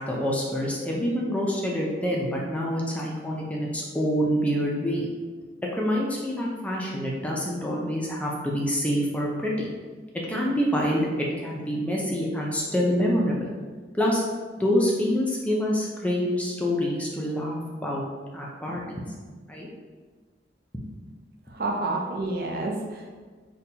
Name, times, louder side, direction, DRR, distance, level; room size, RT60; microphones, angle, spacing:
voice 1, 0.0-5.1 5.7-9.7 10.3-13.5 13.9-14.2 14.6-18.0 18.3-19.1 19.5-19.7 20.7-20.8, equal, 10° left, -3 dB, 0.3 m, -26 dB
voice 2, 21.5-23.2, right 2 dB, 55° right, 0 dB, 0.5 m, -29 dB
4.0 x 2.2 x 2.7 m, 1.4 s
head